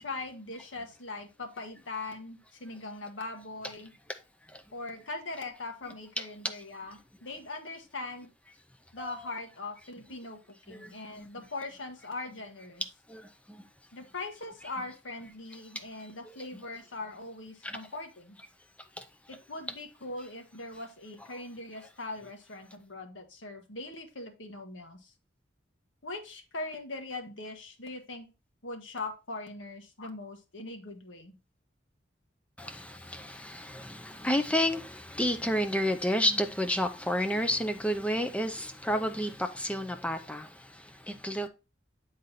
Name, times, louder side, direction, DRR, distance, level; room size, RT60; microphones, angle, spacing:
voice 1, 0.0-3.9 4.7-8.3 8.9-10.4 10.7-12.8 13.9-18.4 19.3-25.1 26.0-28.3 28.6-31.3, left 2 dB, 85° left, 1.4 m, -41 dB
voice 2, 10.7-11.3 13.1-13.7 15.7-15.8 16.2-16.4 17.6-17.8 19.0-19.1 32.6-41.5, equal, 5° left, 0.6 m, -31 dB
8.1 x 4.0 x 4.0 m
head